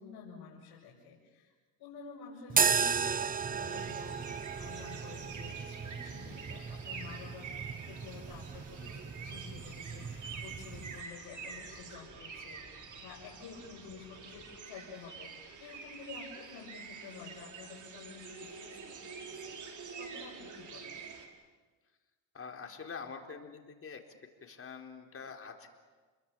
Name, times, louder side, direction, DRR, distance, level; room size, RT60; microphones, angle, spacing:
voice 1, 0.0-1.5 1.8-4.3 4.5-19.0 19.2-19.7 20.0-21.0, left 5 dB, 70° left, -4 dB, 6.2 m, -50 dB
sound 1, 2.5-11.0, right 6 dB, 20° right, 0.7 m, -35 dB
sound 2, 3.5-14.6, left 3 dB, 15° left, 2.5 m, -60 dB
sound 3, 3.6-21.3, right 5 dB, 45° right, 4.6 m, -47 dB
voice 2, 22.3-24.0 24.4-25.7, left 5 dB, 35° left, 3 dB, 4.1 m, -45 dB
29.0 x 22.0 x 8.6 m, 1.4 s
supercardioid pair, 95°, 40 cm